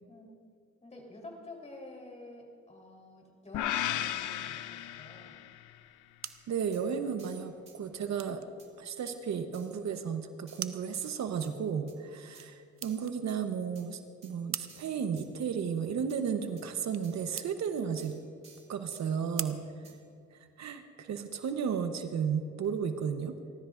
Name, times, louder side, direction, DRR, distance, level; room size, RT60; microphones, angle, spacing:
voice 1, 0.8-5.5, left 2 dB, 20° left, 0 dB, 3.8 m, -49 dB
sound 1, 3.5-5.8, left 12 dB, 80° left, 0.6 m, -34 dB
sound 2, 5.8-20.7, right 9 dB, 45° right, 0.7 m, -47 dB
sound 3, 6.3-6.4 6.7-6.8 7.2-7.8 8.6-8.7 9.1-9.2 9.5-9.8 10.5-11.5 11.9-12.0 12.3-12.5 12.8-13.4 13.8-13.9 14.2-14.3 14.7-15.3 16.1-16.2 16.6-16.7 17.0-17.3 18.0-19.0 19.4-19.5 19.8-20.0, right 3 dB, 20° right, 2.5 m, -57 dB
voice 2, 6.5-8.4 8.8-18.2 18.7-19.6 20.3-23.3, right 7 dB, 65° right, 7 dB, 1.0 m, -34 dB
29.5 x 13.0 x 2.6 m, 2.3 s
cardioid pair, 90°, 30 cm